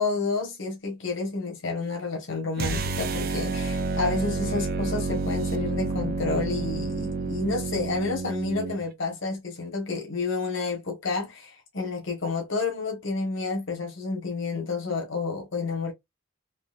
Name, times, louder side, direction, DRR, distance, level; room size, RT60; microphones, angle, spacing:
voice 1, 0.0-15.9, left 3 dB, 70° left, 1.2 m, -30 dB
sound 1, 2.6-8.8, right 3 dB, 45° right, 0.4 m, -29 dB
4.0 x 2.8 x 2.4 m
head